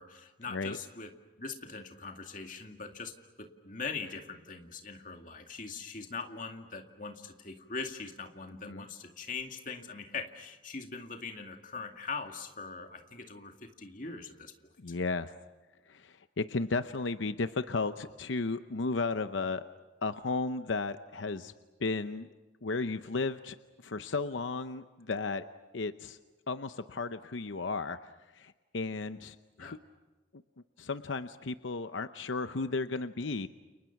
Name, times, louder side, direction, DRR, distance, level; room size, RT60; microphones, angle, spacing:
voice 1, 0.0-14.5 29.6-29.8, left 4 dB, 45° left, 4 dB, 2.3 m, -42 dB
voice 2, 14.8-15.3 15.9-19.6 20.0-21.5 21.8-22.3 22.6-23.6 23.8-25.4 25.7-26.2 26.5-28.0 28.3-29.8 30.8-33.5, left 3 dB, 85° left, 11 dB, 0.8 m, -34 dB
30.0 x 30.0 x 5.9 m, 1.2 s
head